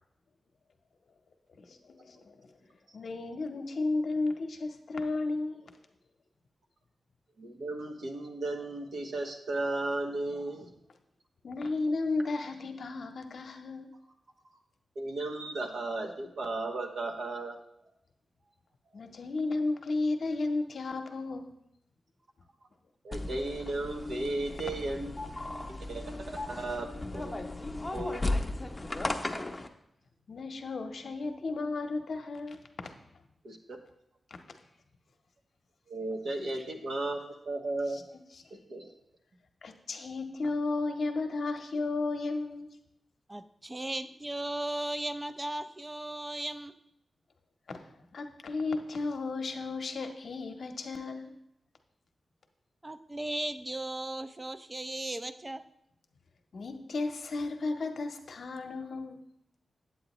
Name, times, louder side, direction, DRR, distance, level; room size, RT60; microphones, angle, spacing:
voice 1, 1.6-2.5 2.9-5.7 11.4-13.9 18.9-21.5 30.3-32.9 34.3-34.4 37.9-38.0 38.3-38.6 39.6-42.7 47.7-47.8 48.1-51.3 56.5-59.2, left 3 dB, 70° left, 5 dB, 0.8 m, -34 dB
voice 2, 7.4-10.7 14.9-17.6 23.0-25.1 25.9-27.3 27.9-28.2 33.4-33.8 35.9-38.0 38.7-38.9, right 2 dB, 80° right, 3 dB, 1.1 m, -35 dB
sound 1, 23.1-29.7, left 2 dB, 20° left, 0.6 m, -36 dB
voice 3, 43.3-46.7 52.8-55.6, right 1 dB, 20° right, 12 dB, 0.4 m, -36 dB
8.4 x 8.0 x 3.0 m, 0.79 s
wide cardioid pair, 85°, 0 cm